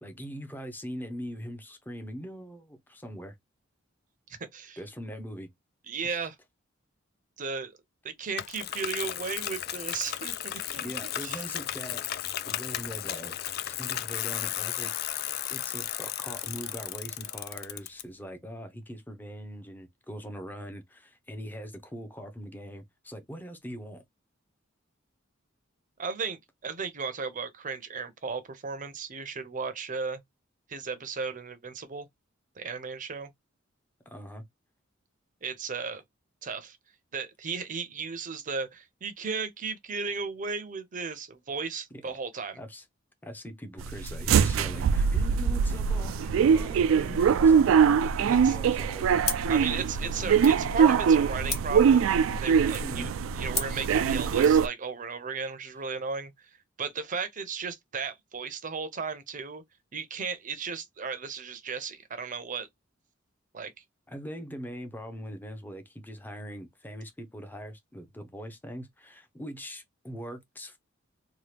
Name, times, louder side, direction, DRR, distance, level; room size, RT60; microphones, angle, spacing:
voice 1, 0.0-3.3 4.8-5.5 6.0-6.3 10.8-12.0 12.4-14.9 15.5-24.0 34.1-34.4 41.9-42.2 42.6-42.8 43.2-49.6 52.8-53.1 64.1-70.8, equal, 10° left, 0.6 m, -41 dB
voice 2, 4.4-4.8 5.9-6.3 7.4-7.8 8.0-11.4 26.0-30.2 30.7-32.1 32.6-33.3 35.4-36.0 36.4-36.8 37.1-42.6 48.2-48.6 49.5-52.0 52.4-56.5 56.8-59.6 59.9-62.7 63.5-63.7, right 5 dB, 40° right, 0.6 m, -35 dB
Bicycle, 8.4-18.0, left 12 dB, 50° left, 0.3 m, -34 dB
sound 1, 43.8-54.7, right 7 dB, 75° right, 0.3 m, -23 dB
sound 2, 49.2-54.6, left 4 dB, 30° left, 1.3 m, -39 dB
2.9 x 2.3 x 3.2 m
head